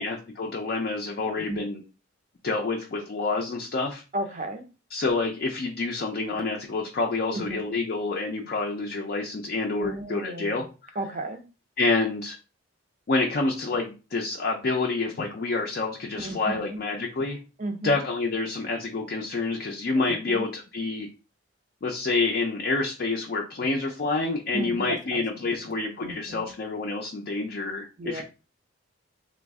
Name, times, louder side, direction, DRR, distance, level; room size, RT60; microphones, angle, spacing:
voice 1, 0.0-1.8 2.4-4.0 4.9-11.0 11.8-12.4 13.1-17.4 17.8-21.1 21.8-28.2, left 3 dB, 45° left, 1 dB, 0.4 m, -28 dB
voice 2, 1.3-1.7 4.1-4.7 7.3-7.7 9.8-10.7 11.0-11.4 16.2-16.8 17.6-18.1 20.0-20.5 24.5-26.5 28.0-28.2, right 2 dB, 35° right, 8 dB, 0.4 m, -35 dB
3.3 x 2.0 x 3.4 m, 0.33 s
head